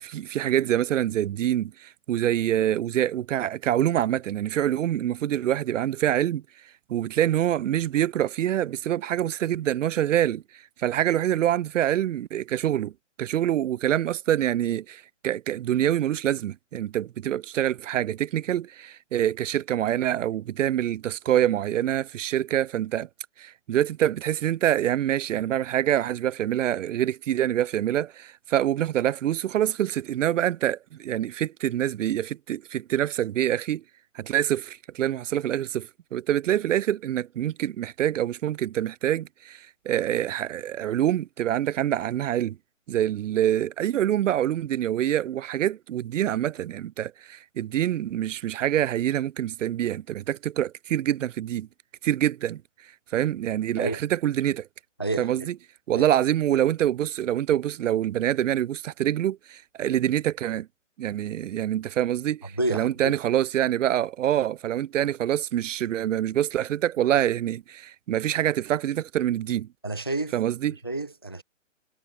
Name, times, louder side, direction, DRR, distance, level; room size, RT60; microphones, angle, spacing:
voice 1, 0.0-6.4 6.9-10.4 10.8-12.9 13.2-23.1 23.4-33.8 34.1-42.6 42.9-51.7 52.0-52.6 53.1-54.7 55.2-55.5 55.9-60.7 61.0-69.7 70.3-70.8, right 11 dB, 70° right, 0.5 m, -25 dB
voice 2, 55.0-55.5 55.9-56.1 62.6-63.2 69.8-70.3 70.8-71.4, right 2 dB, 20° left, 0.3 m, -29 dB
hypercardioid pair, 150°, 39 cm